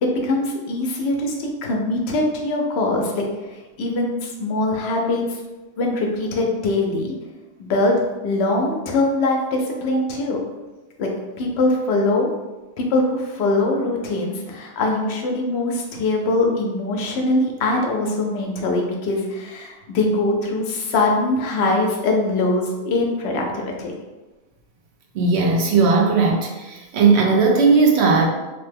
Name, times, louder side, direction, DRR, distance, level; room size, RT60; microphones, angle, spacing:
voice 1, 0.0-3.3 3.8-5.4 5.8-7.1 7.7-7.9 8.2-10.4 11.0-11.1 11.4-12.4 12.8-23.9, left 2 dB, 75° left, 1 dB, 0.8 m, -22 dB
voice 2, 25.1-28.3, right 4 dB, 80° right, 0 dB, 0.9 m, -17 dB
2.9 x 2.1 x 3.2 m, 1.1 s
omnidirectional pair, 1.1 m